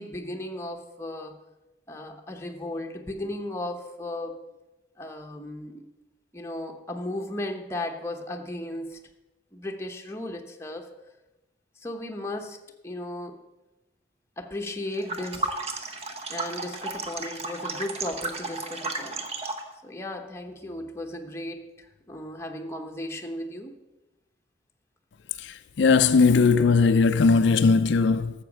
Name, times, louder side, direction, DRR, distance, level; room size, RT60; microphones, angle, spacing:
voice 1, 0.0-1.4 1.9-4.4 5.0-5.9 6.3-9.0 9.5-10.9 11.8-12.6 12.8-13.4 14.4-15.5 16.3-19.2 19.8-23.7, left 1 dB, 15° left, 0.9 m, -35 dB
sound 1, 14.9-19.7, right 3 dB, 30° right, 0.9 m, -33 dB
voice 2, 25.4-28.3, left 4 dB, 65° left, 0.4 m, -19 dB
12.5 x 7.4 x 6.0 m
head